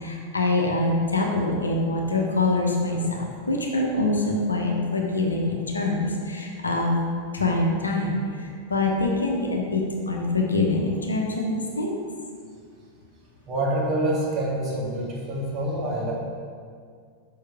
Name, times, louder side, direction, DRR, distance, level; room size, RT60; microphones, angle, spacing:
voice 1, 0.0-7.0 7.3-8.1 8.7-12.0, left 2 dB, 75° left, 0 dB, 1.1 m, -24 dB
voice 2, 13.5-16.1, right 1 dB, 30° right, -4 dB, 2.2 m, -26 dB
6.7 x 5.9 x 5.0 m, 2.1 s
figure-of-eight pair, 90°, 0 cm